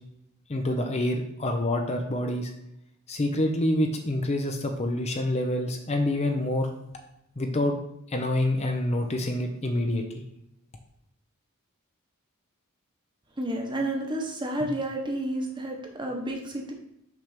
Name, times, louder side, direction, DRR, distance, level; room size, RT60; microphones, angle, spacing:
voice 1, 0.5-2.5 3.1-6.7 7.4-7.7 8.1-10.0, left 1 dB, 30° left, 4 dB, 0.6 m, -27 dB
voice 2, 13.4-16.7, right 1 dB, 20° right, 1 dB, 1.0 m, -30 dB
6.0 x 3.4 x 5.7 m, 0.80 s
head